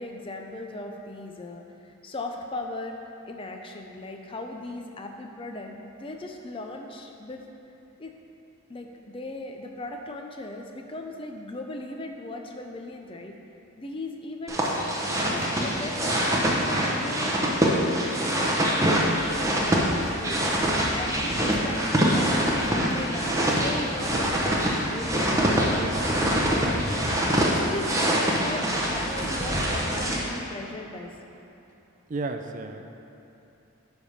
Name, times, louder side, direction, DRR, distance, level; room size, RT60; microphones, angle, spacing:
voice 1, 0.0-3.0 3.3-7.4 8.0-8.1 8.7-13.4 13.8-14.8 15.3-18.6 18.8-31.1, left 2 dB, 25° left, 3 dB, 0.5 m, -38 dB
sound 1, 14.5-30.2, equal, 15° right, 0.8 m, -24 dB
voice 2, 32.1-32.8, right 3 dB, 35° right, 5 dB, 0.4 m, -32 dB
9.6 x 3.5 x 5.5 m, 2.9 s
head